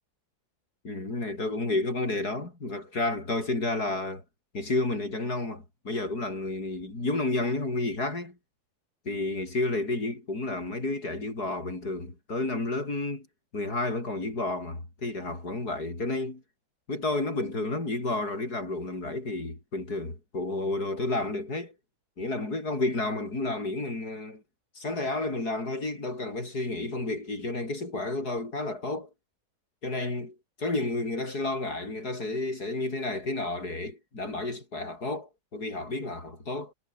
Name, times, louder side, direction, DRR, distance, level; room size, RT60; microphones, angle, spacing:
voice 1, 0.8-4.2 4.5-8.4 9.0-13.3 13.5-16.4 16.9-21.7 22.2-24.4 24.7-29.1 29.8-36.7, left 2 dB, 85° left, 6.7 m, -31 dB
omnidirectional pair, 1.6 m